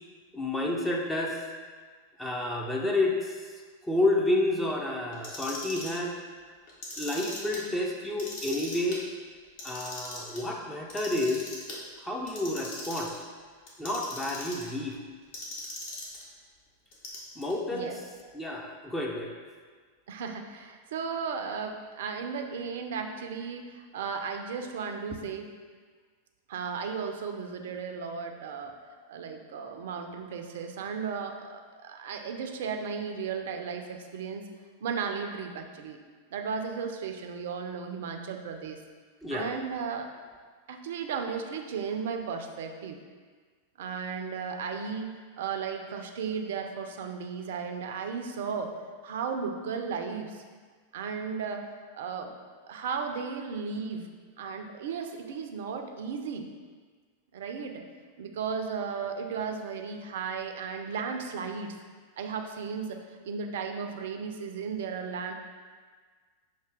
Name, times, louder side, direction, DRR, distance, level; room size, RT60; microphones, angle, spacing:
voice 1, 0.3-1.4 2.2-3.5 3.8-6.1 7.0-9.0 9.6-11.5 12.0-13.1 13.8-15.0 17.4-17.9 18.3-19.3 39.2-39.5, left 2 dB, 10° left, -1 dB, 0.5 m, -30 dB
Clock, 5.1-6.0 6.7-7.6 8.0-9.0 9.4-10.4 10.9-11.8 12.3-13.2 13.7-14.7 15.3-16.2 16.9-17.5, left 2 dB, 50° left, 1.0 m, -40 dB
voice 2, 20.1-25.5 26.5-28.8 29.1-34.5 34.8-36.0 36.3-38.8 39.3-40.1 40.7-43.0 43.8-48.8 49.0-50.4 50.9-51.7 51.9-52.3 52.6-54.1 54.4-56.5 57.3-57.8 58.2-61.7 62.2-65.3, right 6 dB, 55° right, 5 dB, 0.4 m, -35 dB
5.8 x 2.7 x 3.3 m, 1.5 s
figure-of-eight pair, 90°, 0 cm